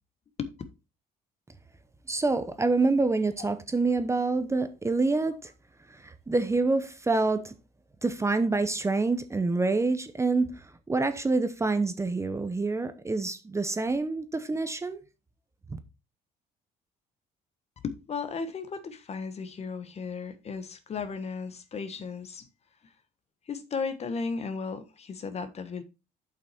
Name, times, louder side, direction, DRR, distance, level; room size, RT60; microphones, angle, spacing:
voice 1, 2.1-5.5 6.0-7.5 8.0-15.0 15.7-15.8, right 3 dB, 15° right, 0.9 m, -27 dB
voice 2, 17.8-22.5 23.5-25.8, left 5 dB, 40° left, 1.3 m, -35 dB
7.5 x 5.8 x 4.4 m
cardioid pair, 110°, 17 cm